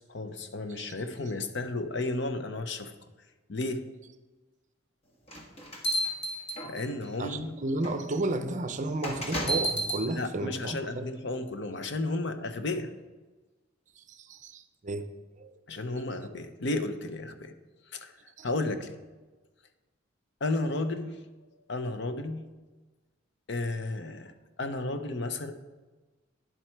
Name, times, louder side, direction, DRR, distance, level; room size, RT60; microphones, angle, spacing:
voice 1, 0.0-2.9 3.5-3.8 6.6-7.5 10.1-12.9 15.7-17.5 17.9-18.1 18.4-19.0 20.4-21.2 21.7-22.4 23.5-24.3 24.6-25.5, left 2 dB, 60° left, 9 dB, 0.7 m, -33 dB
sound 1, 5.3-7.1 7.8-8.0 9.0-10.0, right 1 dB, 30° left, 1.3 m, -31 dB
voice 2, 7.2-11.1 14.0-15.1 15.4-15.5 18.4-18.5, right 2 dB, 40° right, 9 dB, 0.6 m, -33 dB
10.0 x 7.6 x 4.6 m, 1.2 s
head